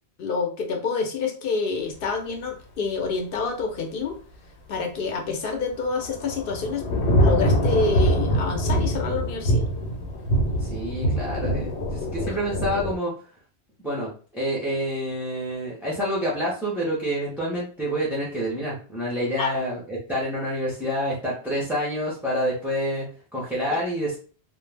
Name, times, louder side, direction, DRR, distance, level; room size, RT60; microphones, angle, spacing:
voice 1, 0.2-4.2 4.7-6.9 7.2-9.7 12.3-12.4 19.4-19.5, left 4 dB, 60° left, 4 dB, 0.8 m, -27 dB
Thunder / Rain, 5.6-13.0, equal, 85° left, 1.0 m, -24 dB
voice 2, 10.6-13.1 13.8-24.2, equal, ahead, -7 dB, 0.5 m, -28 dB
2.3 x 2.1 x 3.2 m, 0.40 s
omnidirectional pair, 1.1 m